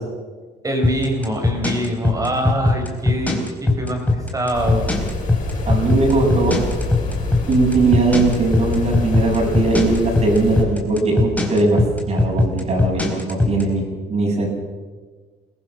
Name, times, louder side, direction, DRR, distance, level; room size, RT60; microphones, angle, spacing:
voice 1, 0.6-4.9, right 1 dB, 20° right, 3 dB, 5.7 m, -24 dB
sound 1, 0.8-13.6, left 2 dB, 10° left, 4.2 m, -19 dB
sound 2, 4.5-10.6, left 2 dB, 50° left, 7.8 m, -27 dB
voice 2, 5.6-6.6 7.5-11.8 12.1-14.5, right 2 dB, 40° right, -1 dB, 7.9 m, -19 dB
23.0 x 18.0 x 6.4 m, 1.4 s
cardioid pair, 110°, 17 cm